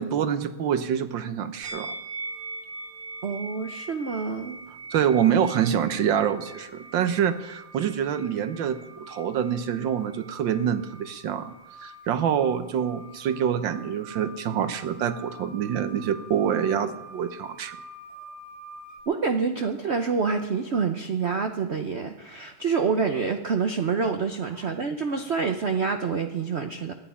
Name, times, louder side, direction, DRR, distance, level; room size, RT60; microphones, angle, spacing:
voice 1, 0.0-1.9 4.9-11.5 11.8-17.8, right 8 dB, 65° right, 11 dB, 1.5 m, -26 dB
sound 1, 1.6-19.0, right 2 dB, 25° right, 1.6 m, -43 dB
voice 2, 3.2-4.6 19.1-26.9, right 5 dB, 85° right, 6 dB, 0.5 m, -27 dB
12.5 x 9.4 x 9.9 m, 0.99 s
omnidirectional pair, 2.4 m